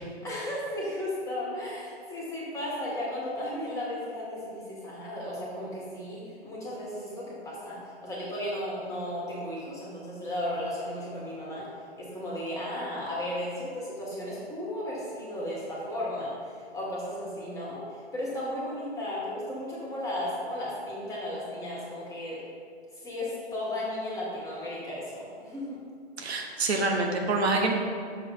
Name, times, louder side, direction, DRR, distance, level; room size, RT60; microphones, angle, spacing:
voice 1, 0.2-11.7 12.0-22.4 23.0-25.8, left 1 dB, 10° left, -6 dB, 1.6 m, -35 dB
voice 2, 26.2-27.7, right 3 dB, 75° right, 2 dB, 1.0 m, -26 dB
6.4 x 3.3 x 5.6 m, 2.2 s
hypercardioid pair, 130°, 32 cm